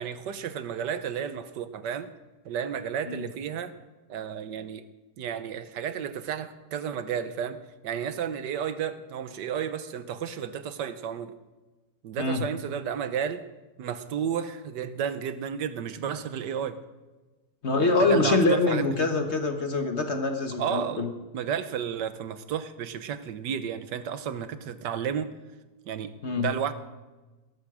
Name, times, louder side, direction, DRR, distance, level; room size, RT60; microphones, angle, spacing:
voice 1, 0.0-2.1 2.4-3.7 4.1-4.8 5.2-7.6 7.8-11.3 12.0-13.4 13.8-16.8 17.8-19.1 20.6-25.3 25.9-26.1 26.4-26.7, right 8 dB, 85° right, 12 dB, 1.5 m, -32 dB
voice 2, 17.6-21.1 26.2-26.5, left 3 dB, 45° left, 5 dB, 1.5 m, -25 dB
18.0 x 13.5 x 4.9 m, 1.2 s
omnidirectional pair, 1.8 m